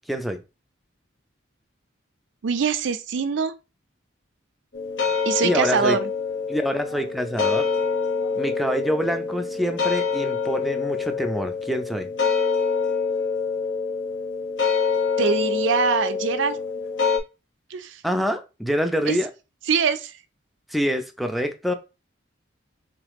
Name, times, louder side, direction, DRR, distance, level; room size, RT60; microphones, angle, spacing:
voice 1, 0.1-0.4 5.4-6.0 6.5-7.7 8.4-12.1 18.0-19.3 20.7-21.7, equal, ahead, 0.4 m, -26 dB
voice 2, 2.4-3.5 5.2-6.0 15.2-16.6 17.7-18.0 19.1-19.2 19.7-20.2, right 6 dB, 70° right, 0.4 m, -23 dB
sound 1, 4.7-17.2, left 5 dB, 70° left, 1.1 m, -26 dB
3.6 x 3.2 x 3.5 m
head